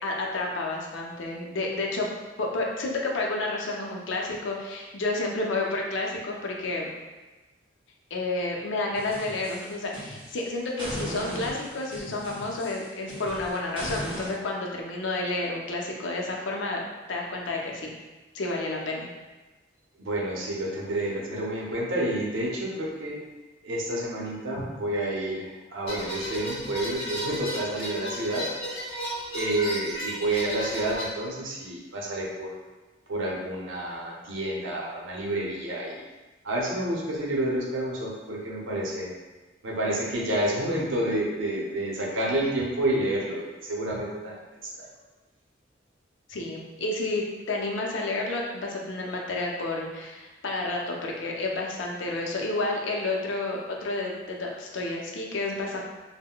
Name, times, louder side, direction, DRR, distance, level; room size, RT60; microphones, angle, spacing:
voice 1, 0.0-2.1 2.4-6.9 8.1-16.8 17.1-17.9 18.3-19.1 46.3-55.8, left 2 dB, 70° left, -1 dB, 0.5 m, -30 dB
sound 1, 8.9-10.4 10.8-14.3, equal, 25° right, 0.7 m, -37 dB
voice 2, 20.0-23.2 23.6-28.5 29.3-32.5 33.1-36.0 36.4-39.1 39.6-44.4 44.7-44.9, right 1 dB, 85° right, -3 dB, 0.7 m, -29 dB
sound 2, 25.9-31.1, equal, 30° left, 0.7 m, -34 dB
3.6 x 2.1 x 2.2 m, 1.2 s
head